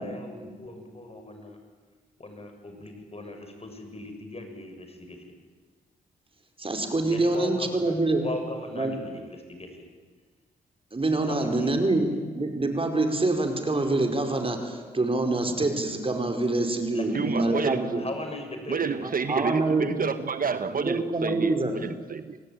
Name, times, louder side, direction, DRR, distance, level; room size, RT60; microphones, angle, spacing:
voice 1, 0.0-1.6 2.2-5.2 7.1-9.7 11.3-11.9 16.9-19.0, left 2 dB, 35° left, 5 dB, 6.9 m, -38 dB
voice 2, 6.6-8.2 8.7-8.9 10.9-18.0 19.0-19.9 20.8-21.7, right 2 dB, 30° right, 5 dB, 5.1 m, -26 dB
voice 3, 17.1-17.9 18.7-21.5 21.8-22.4, right 6 dB, 50° right, 11 dB, 1.2 m, -29 dB
27.5 x 18.5 x 9.0 m, 1.4 s
supercardioid pair, 45°, 18 cm